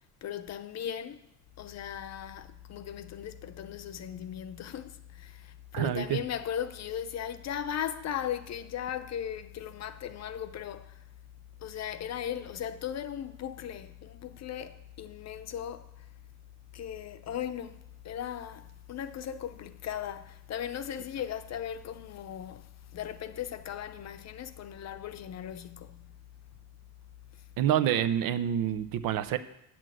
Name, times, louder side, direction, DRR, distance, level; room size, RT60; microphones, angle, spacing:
voice 1, 0.2-1.2 1.6-11.0 11.6-15.9 16.7-22.7 22.9-26.1, left 9 dB, 45° left, 0.7 m, -37 dB
voice 2, 5.7-6.2 27.6-29.4, right 10 dB, 65° right, 0.7 m, -27 dB
7.8 x 5.9 x 7.6 m
supercardioid pair, 90°, 37 cm